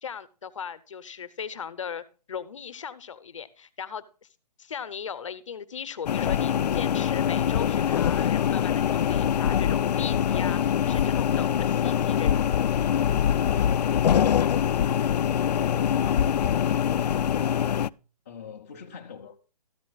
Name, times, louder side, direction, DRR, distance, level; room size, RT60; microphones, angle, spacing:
voice 1, 0.0-4.0 4.6-12.4, left 7 dB, 45° left, 0.9 m, -38 dB
sound 1, 6.1-17.9, left 9 dB, 75° left, 0.4 m, -24 dB
voice 2, 13.9-17.8 18.3-19.4, left 6 dB, 20° left, 0.6 m, -44 dB
13.5 x 10.5 x 2.3 m
hypercardioid pair, 175°, 21 cm